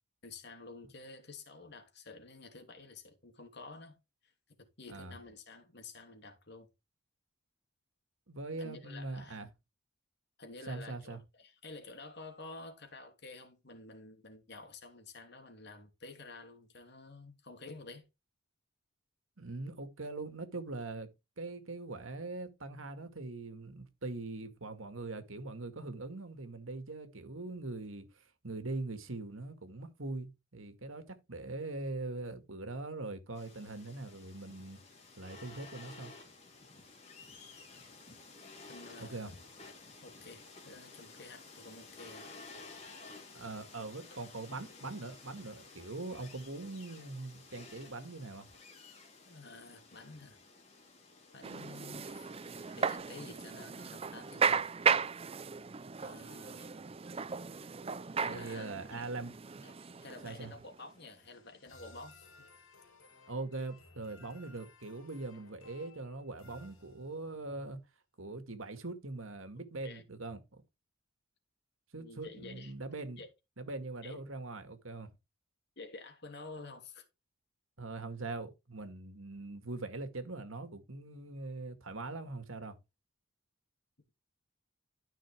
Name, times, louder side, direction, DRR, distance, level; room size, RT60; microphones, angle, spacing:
voice 1, 0.2-4.3 4.6-6.7 8.6-9.4 10.4-18.1 38.7-39.3 40.0-42.3 49.3-50.4 51.3-52.1 52.8-54.6 56.0-56.8 58.2-59.0 59.6-59.7 60.0-62.5 69.8-70.0 71.9-72.7 73.2-73.3 74.0-74.2 75.8-77.1, left 3 dB, 55° left, 2.8 m, -50 dB
voice 2, 8.3-9.5 10.7-11.2 19.4-21.1 21.4-34.8 35.2-36.1 39.0-39.3 43.3-48.5 58.2-59.6 60.2-60.5 63.3-67.8 68.2-70.6 71.9-73.2 73.6-75.1 77.8-82.8, right 2 dB, 75° right, 2.0 m, -42 dB
sound 1, 33.3-53.0, left 3 dB, 30° left, 3.5 m, -54 dB
sound 2, 51.4-60.8, right 6 dB, 30° right, 0.5 m, -35 dB
sound 3, 58.9-67.4, left 3 dB, 70° left, 3.7 m, -60 dB
13.0 x 5.8 x 3.5 m
head